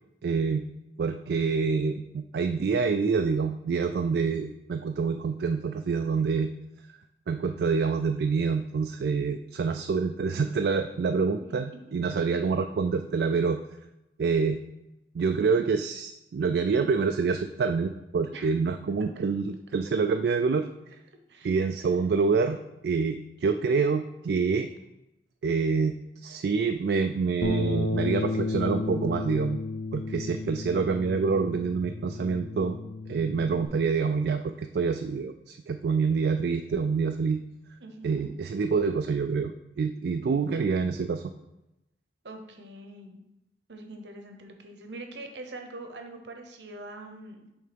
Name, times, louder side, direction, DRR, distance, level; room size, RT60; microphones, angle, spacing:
voice 1, 0.2-0.6 1.0-6.5 7.3-13.6 14.2-14.6 15.1-20.7 21.4-22.6 22.8-24.7 25.4-29.6 29.9-32.8 33.1-37.4 38.0-41.2, right 5 dB, 65° right, 6 dB, 0.3 m, -27 dB
Bass guitar, 27.4-33.7, left 2 dB, 75° left, 0.9 m, -32 dB
voice 2, 37.8-38.3 42.2-43.2 43.7-47.4, right 2 dB, 85° right, 5 dB, 0.9 m, -43 dB
6.5 x 3.4 x 5.1 m, 0.91 s
head